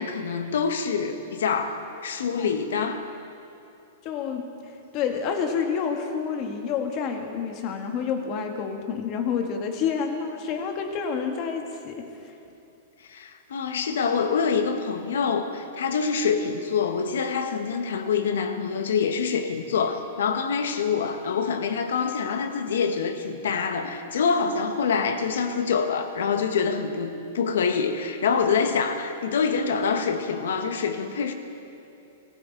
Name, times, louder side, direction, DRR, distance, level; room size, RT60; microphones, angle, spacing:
voice 1, 0.0-3.1 13.1-31.3, left 5 dB, 85° left, 7 dB, 1.4 m, -26 dB
voice 2, 4.0-4.5 4.9-12.0, left 6 dB, 30° left, 4 dB, 1.5 m, -28 dB
21.0 x 14.5 x 4.0 m, 2.8 s
supercardioid pair, 165°, 0 cm